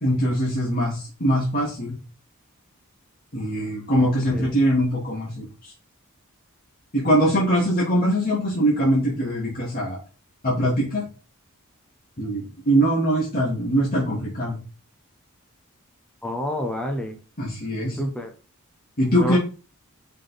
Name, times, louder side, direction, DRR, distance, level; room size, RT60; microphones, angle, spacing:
voice 1, 0.0-1.9 3.3-5.4 6.9-10.0 10.4-11.0 12.2-14.6 17.4-18.0 19.0-19.4, equal, 45° left, -5 dB, 2.7 m, -22 dB
voice 2, 4.0-4.6 16.2-17.2 18.0-18.3 19.2-19.4, equal, 5° left, 2 dB, 1.0 m, -29 dB
7.4 x 5.6 x 3.5 m, 0.35 s
head